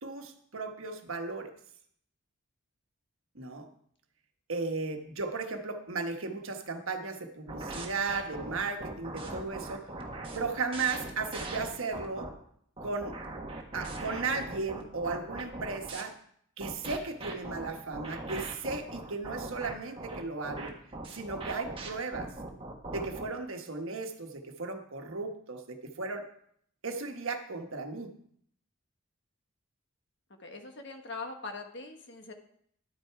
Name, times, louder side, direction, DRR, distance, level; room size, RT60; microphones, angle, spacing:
voice 1, 0.0-1.5 3.3-3.7 4.5-9.9 10.3-12.3 12.8-13.2 13.7-16.1 16.6-20.7 21.1-22.3 22.9-26.3 26.8-28.1, right 4 dB, 70° right, 5 dB, 1.3 m, -35 dB
sound 1, 7.5-12.3 12.8-16.0 16.6-23.3, right 2 dB, 25° right, 1.4 m, -40 dB
voice 2, 30.4-32.3, left 3 dB, 55° left, 4 dB, 1.4 m, -42 dB
11.5 x 8.9 x 4.6 m, 0.66 s
head